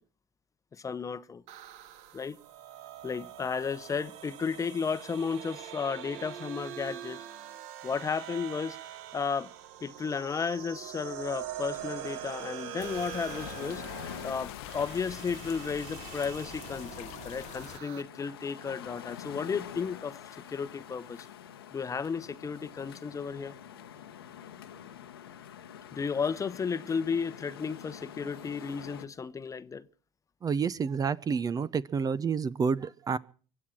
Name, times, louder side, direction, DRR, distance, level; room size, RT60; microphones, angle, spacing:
voice 1, 0.7-1.4 2.1-2.4 3.0-7.3 7.8-9.5 9.8-13.8 14.2-20.2 20.5-21.2 21.7-23.5 25.9-29.9, left 5 dB, 25° left, 0.9 m, -33 dB
sound 1, 1.5-18.0, right 11 dB, 65° right, 1.1 m, -43 dB
sound 2, 11.7-29.0, left 9 dB, 90° left, 1.1 m, -47 dB
sound 3, 12.8-17.8, left 16 dB, 65° left, 0.8 m, -45 dB
voice 2, 30.4-33.2, right 6 dB, 30° right, 0.7 m, -29 dB
24.0 x 8.5 x 6.0 m
hypercardioid pair, 70°, 12 cm